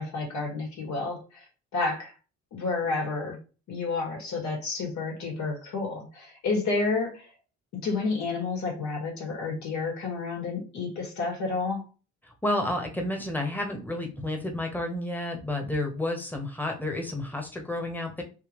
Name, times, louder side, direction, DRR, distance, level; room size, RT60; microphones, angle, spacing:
voice 1, 0.0-1.5 1.7-2.1 2.5-3.4 3.7-7.3 7.7-11.9, left 3 dB, 70° left, 0 dB, 1.8 m, -30 dB
voice 2, 12.4-18.2, left 1 dB, 5° left, 2 dB, 1.1 m, -30 dB
3.5 x 2.8 x 3.0 m, 0.33 s
cardioid pair, 90°, 30 cm